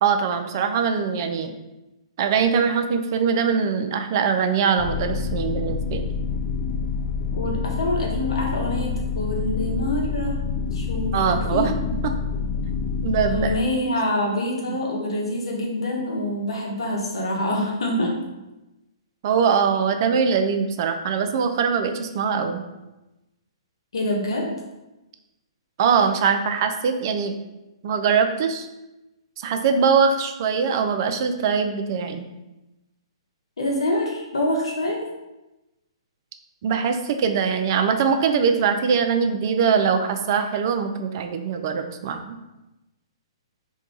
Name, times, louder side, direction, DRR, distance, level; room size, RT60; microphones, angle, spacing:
voice 1, 0.0-1.5 2.2-6.0 11.1-11.7 13.0-13.5 14.2-14.8 19.2-22.6 25.8-27.3 27.8-28.7 29.4-32.3 36.6-42.3, right 6 dB, 45° right, 7 dB, 0.4 m, -22 dB
sound 1, 4.8-13.6, left 5 dB, 50° left, 0.3 m, -27 dB
voice 2, 7.3-10.5 10.7-11.2 11.5-11.7 13.3-18.1 23.9-24.5 33.6-35.0, left 1 dB, 70° left, -1 dB, 0.9 m, -26 dB
2.7 x 2.3 x 3.8 m, 1.0 s
figure-of-eight pair, 125°, 3 cm